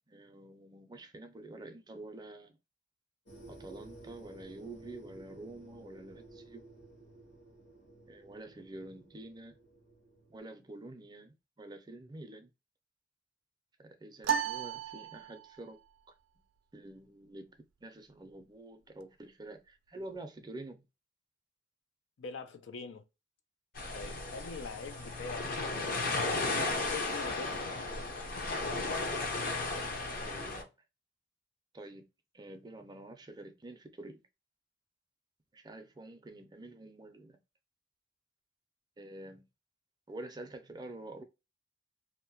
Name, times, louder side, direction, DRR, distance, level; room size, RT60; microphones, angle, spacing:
voice 1, 0.1-2.5 3.5-6.7 8.1-9.5 10.3-12.5 13.8-15.8 16.7-20.9 30.2-30.7 31.7-32.1 32.3-34.2 35.5-37.4 39.0-39.4 40.1-41.2, right 2 dB, 25° right, 0.5 m, -48 dB
sound 1, 3.3-10.4, right 2 dB, 70° left, 1.4 m, -54 dB
sound 2, 14.2-15.7, right 8 dB, 90° right, 0.3 m, -34 dB
voice 2, 22.2-23.0 23.9-25.6 26.8-27.7, left 4 dB, 85° left, 0.5 m, -43 dB
sound 3, 23.8-30.6, left 3 dB, 50° left, 0.7 m, -35 dB
2.7 x 2.1 x 2.8 m
head